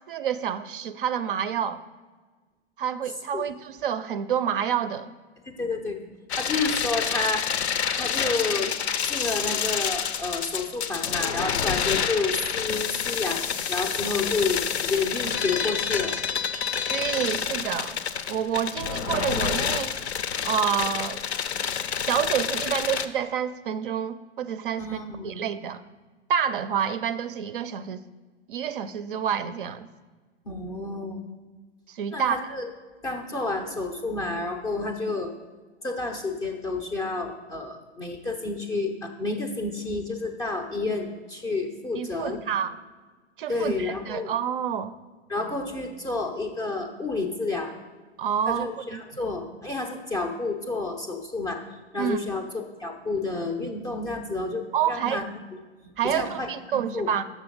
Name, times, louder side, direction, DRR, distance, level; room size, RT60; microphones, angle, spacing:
voice 1, 0.1-1.8 2.8-5.1 16.9-18.0 18.3-19.9 20.4-21.2 22.1-25.8 26.3-28.0 28.5-29.9 31.9-32.4 41.9-42.8 43.4-44.9 48.2-49.0 52.0-52.2 54.7-55.2 56.0-57.2, right 8 dB, 50° right, 13 dB, 0.4 m, -28 dB
voice 2, 5.5-6.0 6.4-8.7 9.1-16.2 24.8-25.4 30.4-31.2 32.1-32.7 33.0-35.3 35.8-42.4 43.5-44.3 45.3-47.7 48.5-55.3 55.8-57.1, left 3 dB, 10° left, 3 dB, 0.4 m, -30 dB
sound 1, 6.3-23.1, left 7 dB, 65° left, 0.6 m, -28 dB
6.5 x 6.2 x 5.2 m, 1.4 s
figure-of-eight pair, 110°, 34 cm